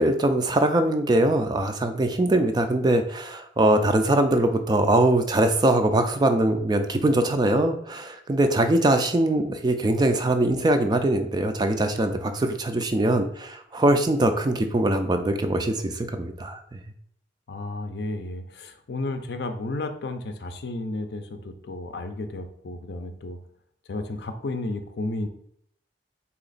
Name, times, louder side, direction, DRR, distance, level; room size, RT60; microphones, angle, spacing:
voice 1, 0.0-16.8, right 1 dB, 20° right, 7 dB, 0.3 m, -22 dB
voice 2, 17.5-23.4 23.9-25.3, left 2 dB, 60° left, 7 dB, 0.5 m, -32 dB
4.2 x 2.9 x 3.9 m, 0.68 s
head